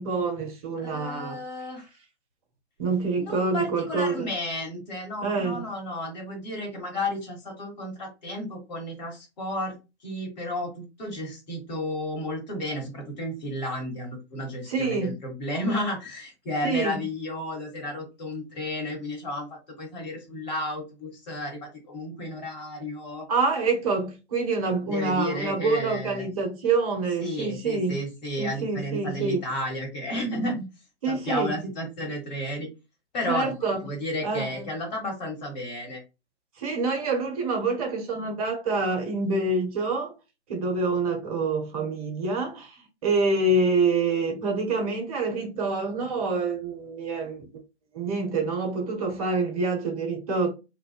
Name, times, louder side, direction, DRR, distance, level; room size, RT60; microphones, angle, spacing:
voice 1, 0.0-1.4 2.8-4.3 5.2-5.7 14.7-15.1 16.6-17.0 23.3-28.0 28.4-29.4 31.0-31.5 33.3-33.8 34.2-34.7 36.6-40.1 40.5-47.5 47.9-50.5, right 3 dB, 30° right, 0.8 m, -26 dB
voice 2, 0.8-1.9 3.2-9.7 10.0-23.3 24.9-26.3 27.2-30.7 31.1-32.7 33.1-33.5 33.8-36.0, left 1 dB, 40° left, 1.1 m, -32 dB
2.4 x 2.2 x 2.3 m
figure-of-eight pair, 120°, 35 cm